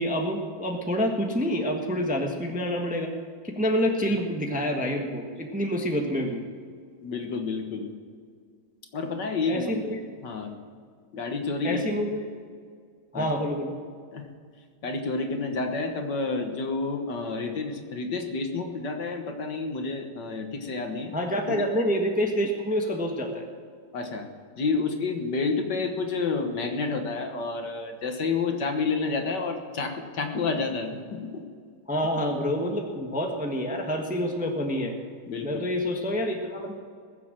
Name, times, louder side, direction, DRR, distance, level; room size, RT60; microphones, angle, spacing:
voice 1, 0.0-3.1 3.4-6.4 9.5-10.0 11.6-12.3 13.1-13.7 21.1-23.5 31.9-34.9 35.4-36.7, equal, 5° right, 2 dB, 1.1 m, -27 dB
voice 2, 7.0-7.9 8.9-9.9 10.2-10.6 11.1-12.0 13.1-13.3 14.1-14.3 14.8-21.1 23.9-24.3 24.6-31.4 35.3-35.6, left 4 dB, 60° left, 5 dB, 1.9 m, -29 dB
21.0 x 7.5 x 7.5 m, 2.1 s
omnidirectional pair, 2.2 m